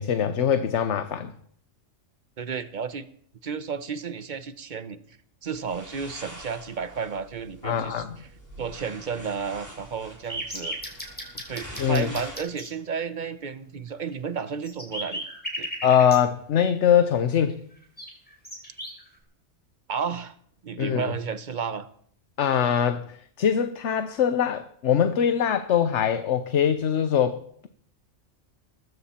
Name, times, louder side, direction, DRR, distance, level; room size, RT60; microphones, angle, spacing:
voice 1, 0.0-1.3 7.6-8.2 11.8-12.1 15.8-17.6 20.8-21.0 22.4-27.7, left 8 dB, 70° left, 1.2 m, -23 dB
voice 2, 2.4-3.1 3.4-5.0 5.4-8.0 8.6-10.8 11.5-15.3 15.6-15.7 19.9-20.3 20.6-21.9, right 6 dB, 40° right, 1.0 m, -32 dB
sound 1, 5.5-12.4, right 1 dB, 15° right, 4.5 m, -45 dB
sound 2, 10.3-12.7 14.1-14.2 14.4-16.2 17.5-17.6 18.0-19.1, equal, 5° left, 5.3 m, -35 dB
20.5 x 15.0 x 4.4 m
omnidirectional pair, 1.3 m